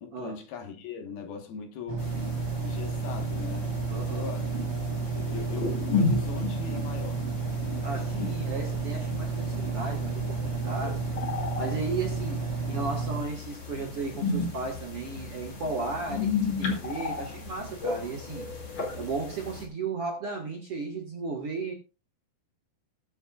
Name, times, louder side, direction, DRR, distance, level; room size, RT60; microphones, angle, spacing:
voice 1, 0.0-2.1 2.6-4.5 5.1-7.2 7.7-8.4, left 6 dB, 70° left, 3.2 m, -40 dB
sound 1, 1.9-13.2, right 4 dB, 70° right, 1.4 m, -31 dB
sound 2, 2.0-19.6, left 4 dB, 35° left, 2.6 m, -34 dB
voice 2, 3.9-4.3 7.8-11.2 11.6-18.5 18.9-21.7, right 3 dB, 55° right, 1.7 m, -35 dB
21.0 x 7.0 x 2.4 m
omnidirectional pair, 4.6 m